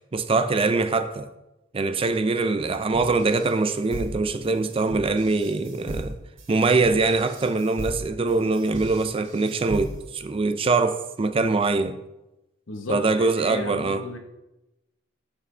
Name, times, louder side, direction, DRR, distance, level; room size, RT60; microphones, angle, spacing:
voice 1, 0.1-1.3 1.7-6.1 6.5-12.0 12.9-14.0, right 3 dB, 30° right, 0.4 m, -23 dB
sound 1, 2.9-10.2, right 1 dB, 75° right, 1.9 m, -37 dB
voice 2, 12.7-14.2, left 3 dB, 70° left, 1.1 m, -34 dB
14.5 x 5.0 x 3.3 m
head